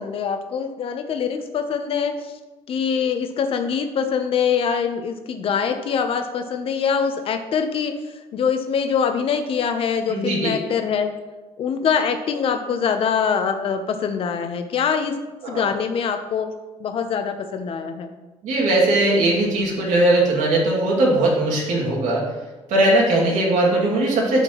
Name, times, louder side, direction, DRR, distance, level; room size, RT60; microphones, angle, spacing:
voice 1, 0.0-2.3 2.7-11.1 11.6-15.1 15.5-16.5 16.8-18.1, left 6 dB, 50° left, 7 dB, 0.7 m, -24 dB
voice 2, 10.1-10.5 15.4-15.7 18.4-22.3 22.7-24.4, right 1 dB, 80° right, -3 dB, 2.2 m, -19 dB
11.5 x 4.4 x 3.0 m, 1.2 s
cardioid pair, 155°, 12 cm